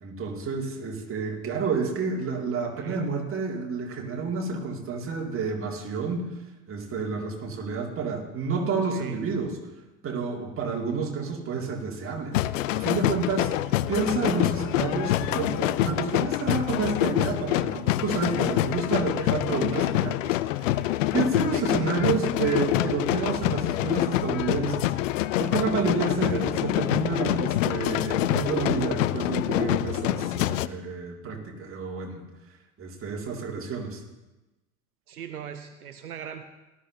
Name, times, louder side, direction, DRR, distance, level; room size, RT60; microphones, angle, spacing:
voice 1, 0.0-6.3 6.7-9.5 10.0-13.6 13.9-20.1 20.5-32.2 32.8-34.0, right 5 dB, 30° right, 0 dB, 2.3 m, -30 dB
voice 2, 2.5-3.1 8.8-9.2 19.7-20.0 21.5-21.9 26.1-26.5 35.1-36.4, right 8 dB, 80° right, 9 dB, 0.7 m, -41 dB
sound 1, 12.3-30.7, left 15 dB, 60° left, 0.5 m, -26 dB
sound 2, 23.1-26.8, left 1 dB, 35° left, 2.1 m, -45 dB
18.0 x 12.5 x 2.8 m, 1.1 s
figure-of-eight pair, 75°, 43 cm